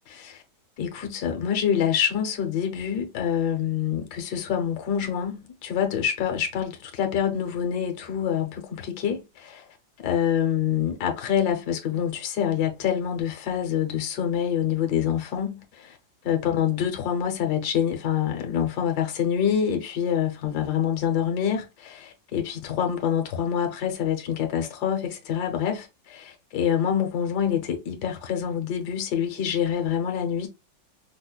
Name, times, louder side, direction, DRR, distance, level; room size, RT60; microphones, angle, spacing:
voice 1, 0.1-0.4 0.8-9.6 10.0-16.0 16.2-30.5, left 8 dB, 65° left, 1.3 m, -26 dB
5.0 x 2.1 x 2.2 m
omnidirectional pair, 2.0 m